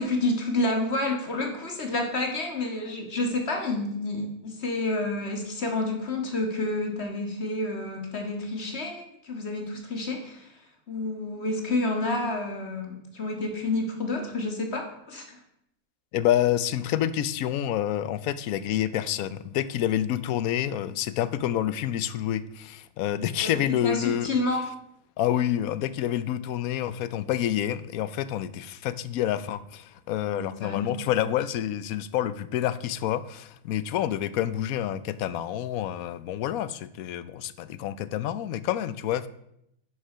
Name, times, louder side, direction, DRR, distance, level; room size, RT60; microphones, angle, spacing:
voice 1, 0.0-10.5 10.9-15.4 23.4-24.6 30.3-30.9, left 2 dB, 50° left, 3 dB, 1.9 m, -29 dB
voice 2, 16.1-24.4 25.2-39.3, left 11 dB, 85° left, 16 dB, 1.1 m, -28 dB
11.0 x 6.6 x 5.6 m, 0.78 s
omnidirectional pair, 1.5 m